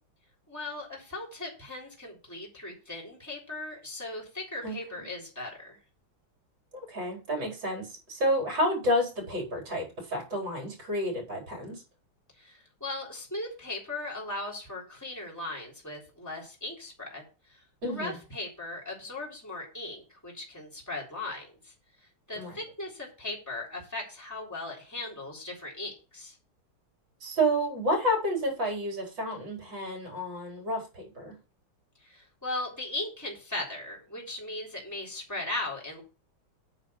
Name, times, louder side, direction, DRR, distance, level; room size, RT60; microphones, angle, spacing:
voice 1, 0.5-5.8 12.4-17.6 17.9-21.7 22.3-26.4 32.0-36.0, left 2 dB, 10° left, -3 dB, 3.7 m, -38 dB
voice 2, 6.9-11.8 17.8-18.2 22.4-22.6 27.2-31.4, equal, 60° right, 0 dB, 5.1 m, -30 dB
9.3 x 4.8 x 7.4 m, 0.33 s
omnidirectional pair, 2.3 m